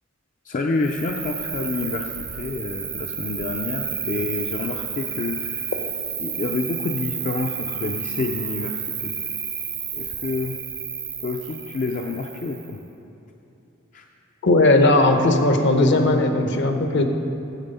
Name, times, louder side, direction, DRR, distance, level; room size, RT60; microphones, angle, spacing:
voice 1, 0.4-5.7 6.2-9.1 9.9-10.6 11.2-12.8 13.9-14.1, left 3 dB, 40° left, 2 dB, 0.4 m, -28 dB
Cricket, 0.8-12.8, right 7 dB, 15° right, 0.4 m, -31 dB
voice 2, 14.4-17.0, left 2 dB, 60° left, 5 dB, 0.8 m, -17 dB
9.0 x 7.3 x 5.4 m, 2.9 s
head